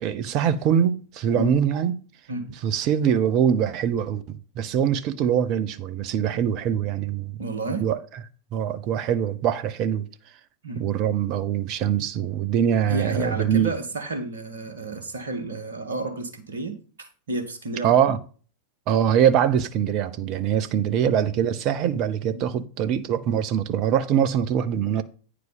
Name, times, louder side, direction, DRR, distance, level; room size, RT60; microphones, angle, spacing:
voice 1, 0.0-2.0 2.6-7.4 7.8-8.0 8.5-10.1 10.8-13.7 17.8-18.2 18.9-25.0, right 9 dB, 40° right, 0.8 m, -23 dB
voice 2, 7.4-7.9 10.6-10.8 12.9-18.0 22.3-22.4, right 2 dB, 65° right, 1.7 m, -31 dB
9.4 x 4.8 x 5.3 m
figure-of-eight pair, 90°, 0 cm